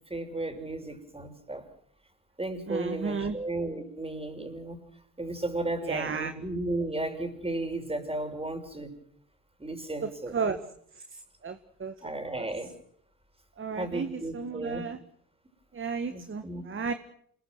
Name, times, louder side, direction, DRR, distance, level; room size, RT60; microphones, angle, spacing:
voice 1, 0.1-1.7 2.4-4.8 5.2-8.9 9.6-10.3 12.0-12.7 13.8-14.9 16.1-16.6, right 2 dB, 15° right, 6 dB, 6.3 m, -34 dB
voice 2, 2.7-3.4 5.8-6.3 10.0-10.6 10.9-12.1 12.3-12.5 13.6-15.0 15.7-16.9, right 5 dB, 30° right, 9 dB, 1.7 m, -33 dB
27.5 x 21.5 x 6.2 m, 0.68 s
hypercardioid pair, 55°, 41 cm